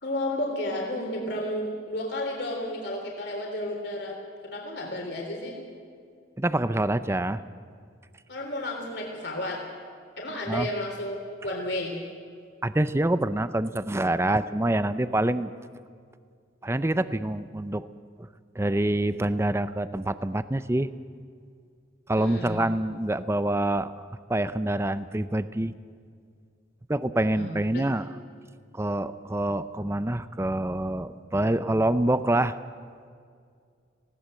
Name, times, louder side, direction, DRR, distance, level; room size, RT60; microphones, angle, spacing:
voice 1, 0.0-4.2 4.4-5.6 8.3-9.6 10.2-12.0 22.2-22.6 27.3-27.8, left 1 dB, 60° left, 0 dB, 3.5 m, -32 dB
voice 2, 6.4-7.4 10.3-10.7 12.6-15.5 16.6-17.9 18.2-18.3 18.6-20.9 22.1-23.9 24.3-25.7 26.9-28.1 28.7-32.6, right 1 dB, 15° right, 13 dB, 0.5 m, -26 dB
19.5 x 17.0 x 7.7 m, 2.2 s
head